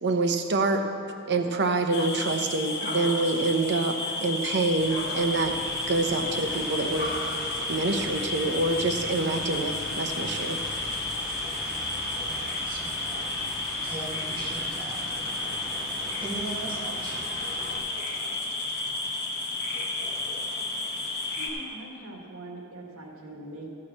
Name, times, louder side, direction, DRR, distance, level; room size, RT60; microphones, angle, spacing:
voice 1, 0.0-0.8 1.3-5.5 5.9-7.1 7.7-10.6, right 3 dB, 55° right, 5 dB, 0.8 m, -26 dB
sound 1, 1.9-21.5, left 2 dB, 50° left, 1.4 m, -32 dB
sound 2, 4.8-17.8, equal, ahead, 2.5 m, -40 dB
voice 2, 12.2-13.2 13.8-15.0 16.2-17.4, right 2 dB, 25° right, -5 dB, 2.0 m, -38 dB
voice 3, 21.4-23.7, right 1 dB, 70° right, 0 dB, 1.8 m, -42 dB
14.5 x 4.8 x 7.2 m, 2.4 s
head